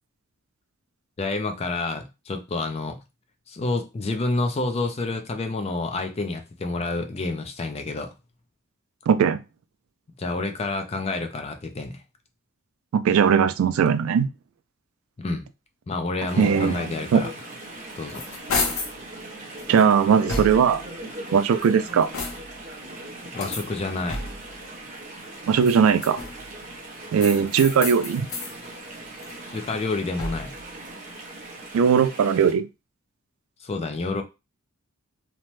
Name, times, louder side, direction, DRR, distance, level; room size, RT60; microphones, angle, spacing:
voice 1, 1.2-3.0 3.5-8.1 10.2-12.0 15.2-15.4 15.9-17.3 18.0-18.2 23.3-24.2 29.5-30.5 33.6-34.2, left 3 dB, 30° left, 0.4 m, -28 dB
voice 2, 9.1-9.4 12.9-14.3 16.4-16.8 17.1-17.2 19.7-20.8 21.3-22.1 25.5-26.2 27.1-28.3 31.7-32.7, right 7 dB, 75° right, 0.3 m, -19 dB
Chatter / Stream, 16.2-32.5, right 1 dB, 35° right, 0.6 m, -39 dB
sound 1, 17.7-19.0 19.6-20.9 21.5-22.7 23.3-24.6 25.5-26.5 27.2-28.6 29.0-30.6, left 3 dB, 80° left, 0.8 m, -33 dB
2.8 x 2.1 x 3.0 m
head